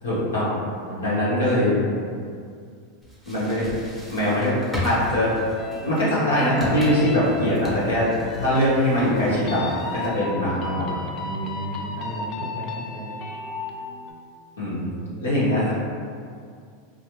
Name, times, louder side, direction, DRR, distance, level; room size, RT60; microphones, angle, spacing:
voice 1, 0.0-0.5 1.0-1.8 3.3-3.6 4.1-4.6 4.8-5.3 5.8-8.1 8.4-10.9 14.6-14.8 15.2-15.7, left 1 dB, 90° left, -8 dB, 1.0 m, -22 dB
voice 2, 0.9-1.8 2.1-2.2 11.2-13.2 14.8-15.7, right 2 dB, 65° right, 0 dB, 0.5 m, -34 dB
sound 1, 3.0-10.3, left 1 dB, ahead, 0.8 m, -36 dB
sound 2, 5.6-14.1, left 4 dB, 45° left, 0.3 m, -34 dB
2.4 x 2.1 x 3.0 m, 2.2 s
hypercardioid pair, 100°, 0 cm